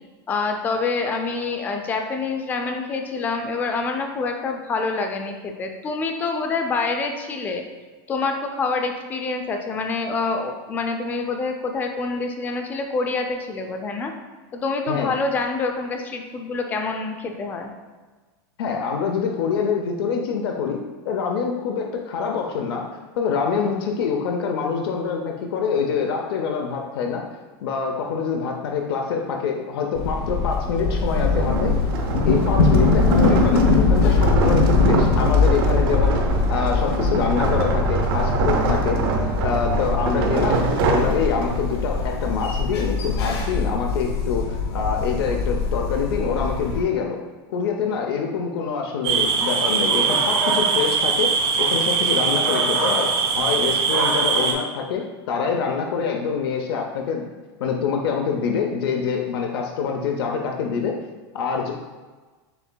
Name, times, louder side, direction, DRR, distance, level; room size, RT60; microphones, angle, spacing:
voice 1, 0.3-7.6 8.1-14.1 14.5-17.7, left 4 dB, 15° left, 4 dB, 0.3 m, -26 dB
voice 2, 18.6-22.9 23.2-27.3 27.6-31.8 32.3-36.2 36.5-39.0 39.4-47.2 47.5-51.3 51.6-57.2 57.6-61.0 61.3-61.7, left 6 dB, 70° left, 2 dB, 0.6 m, -25 dB
sound 1, 29.9-46.8, left 4 dB, 90° left, 1.0 m, -22 dB
sound 2, 30.8-41.8, right 4 dB, 65° right, 0.7 m, -25 dB
sound 3, 49.0-54.5, right 5 dB, 85° right, 1.3 m, -21 dB
6.9 x 3.4 x 2.2 m, 1.3 s
supercardioid pair, 170°, 13 cm